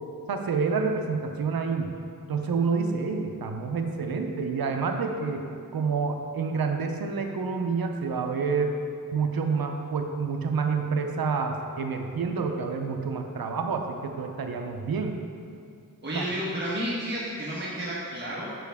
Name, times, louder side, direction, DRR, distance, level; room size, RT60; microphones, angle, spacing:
voice 1, 0.3-1.9 2.3-5.4 5.7-8.8 9.1-15.2 16.1-16.2, right 5 dB, 90° right, 4 dB, 0.6 m, -28 dB
voice 2, 16.0-18.5, equal, 30° right, -7 dB, 1.2 m, -31 dB
7.4 x 7.0 x 3.5 m, 2.4 s
wide cardioid pair, 65°, 35 cm